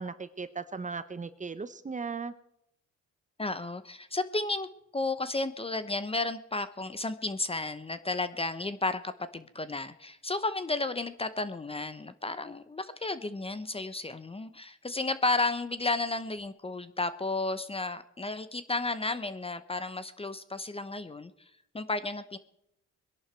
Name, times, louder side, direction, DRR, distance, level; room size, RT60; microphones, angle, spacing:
voice 1, 0.0-2.3, right 4 dB, 25° right, 12 dB, 0.9 m, -37 dB
voice 2, 3.4-21.3 21.7-22.4, left 2 dB, 20° left, 12 dB, 0.8 m, -33 dB
21.5 x 11.0 x 4.6 m, 0.78 s
cardioid pair, 90°, 30 cm